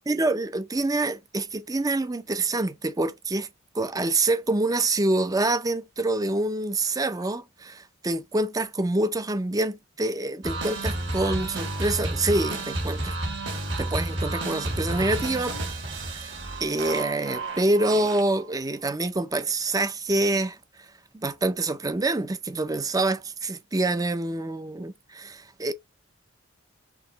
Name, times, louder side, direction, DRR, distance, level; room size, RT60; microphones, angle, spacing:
voice 1, 0.1-3.5 3.7-13.1 13.8-15.6 15.9-16.3 16.6-20.6 21.1-25.7, right 2 dB, 15° right, 0.5 m, -26 dB
sound 1, 10.4-18.5, right 2 dB, 60° right, 2.0 m, -31 dB
6.1 x 2.9 x 2.9 m
head